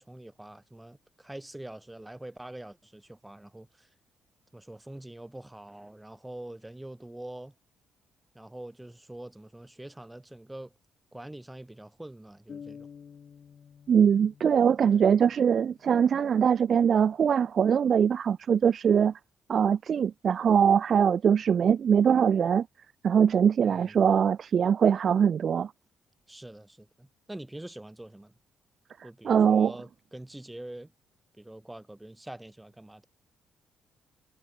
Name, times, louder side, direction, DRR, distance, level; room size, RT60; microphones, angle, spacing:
voice 1, 0.0-3.9 4.5-7.5 8.4-10.7 11.1-12.9 14.9-15.0 23.6-24.0 26.3-28.3 29.0-30.9 31.4-33.1, right 1 dB, 10° right, 1.7 m, -44 dB
sound 1, 12.5-16.3, left 7 dB, 50° left, 2.8 m, -50 dB
voice 2, 13.9-19.1 19.5-22.7 23.0-25.7 29.2-29.7, right 7 dB, 55° right, 0.4 m, -22 dB
cardioid pair, 90°, 0 cm